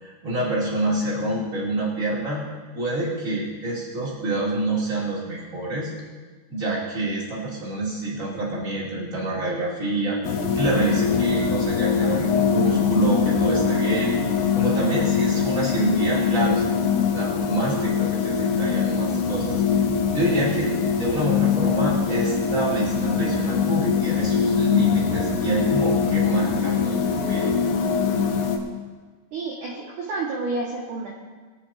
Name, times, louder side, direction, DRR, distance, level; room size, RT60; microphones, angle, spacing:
voice 1, 0.0-2.4 2.7-5.9 6.5-10.2 10.5-14.1 14.5-16.8 17.1-19.6 20.1-27.5, right 1 dB, 25° right, -6 dB, 1.8 m, -27 dB
sound 1, 10.2-28.6, left 6 dB, 85° left, 3.8 m, -22 dB
voice 2, 29.3-31.1, right 3 dB, 70° right, -4 dB, 1.9 m, -29 dB
22.0 x 7.8 x 4.2 m, 1.4 s
omnidirectional pair, 5.9 m